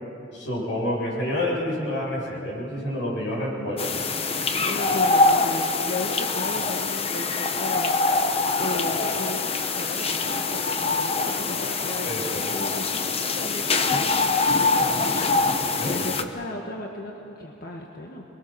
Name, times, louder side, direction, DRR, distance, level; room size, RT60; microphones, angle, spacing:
voice 1, 0.3-4.0 12.0-12.5 15.8-16.0, left 1 dB, 85° left, -4 dB, 7.8 m, -28 dB
sound 1, 3.8-16.2, left 3 dB, 35° left, 1.0 m, -24 dB
voice 2, 4.6-8.3 8.6-18.2, left 1 dB, 55° left, 0 dB, 1.6 m, -35 dB
27.0 x 21.5 x 6.3 m, 2.9 s
head